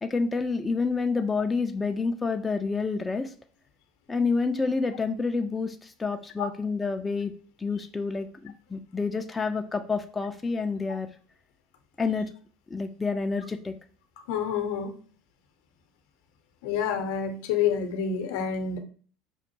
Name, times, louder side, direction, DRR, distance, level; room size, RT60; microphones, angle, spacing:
voice 1, 0.0-3.3 4.1-7.3 7.6-11.1 12.0-12.3 12.7-13.8, left 4 dB, 20° left, 6 dB, 0.4 m, -28 dB
voice 2, 14.3-14.9 16.6-18.8, left 7 dB, 70° left, 6 dB, 0.7 m, -28 dB
5.2 x 2.1 x 2.9 m, 0.42 s
hypercardioid pair, 75°, 0 cm